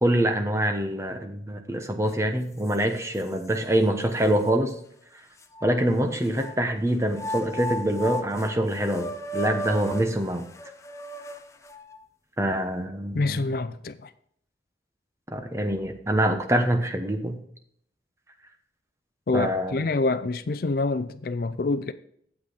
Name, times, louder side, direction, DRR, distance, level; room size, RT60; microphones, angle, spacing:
voice 1, 0.0-4.7 5.6-10.4 12.4-13.5 15.3-17.4 19.3-19.8, right 1 dB, 15° right, 0.9 m, -25 dB
sound 1, 2.1-2.2 2.7-3.6 4.2-4.3 5.4-6.5 7.1-12.0, equal, 15° left, 0.6 m, -36 dB
voice 2, 13.1-14.1 19.3-21.9, left 3 dB, 55° left, 0.4 m, -26 dB
8.6 x 8.2 x 4.0 m
head